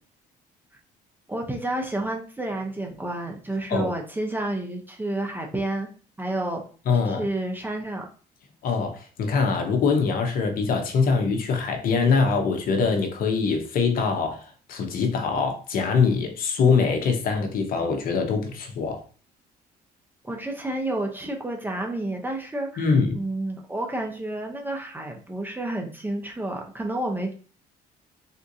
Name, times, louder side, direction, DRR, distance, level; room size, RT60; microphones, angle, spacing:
voice 1, 1.3-5.9 6.2-6.6 7.1-8.1 20.2-27.3, right 1 dB, 10° right, 0.6 m, -30 dB
voice 2, 6.9-7.2 8.6-19.0 22.8-23.2, left 5 dB, 60° left, 0.7 m, -23 dB
3.6 x 2.6 x 2.6 m
cardioid pair, 110°, 17 cm